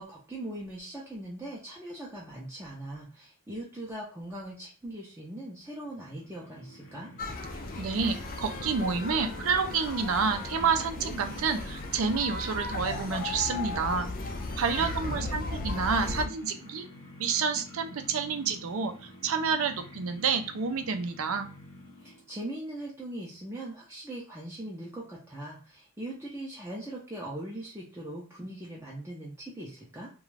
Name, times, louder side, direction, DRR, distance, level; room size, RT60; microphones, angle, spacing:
voice 1, 0.0-7.1 14.7-15.3 22.0-30.1, right 1 dB, 10° right, -4 dB, 0.5 m, -40 dB
sound 1, 5.8-22.5, left 1 dB, 75° left, 1.0 m, -49 dB
sound 2, 7.2-16.3, left 2 dB, 40° left, 0.4 m, -36 dB
voice 2, 7.8-14.1 14.6-16.8 17.2-21.5, right 5 dB, 75° right, 7 dB, 0.5 m, -29 dB
2.5 x 2.2 x 3.1 m, 0.40 s
head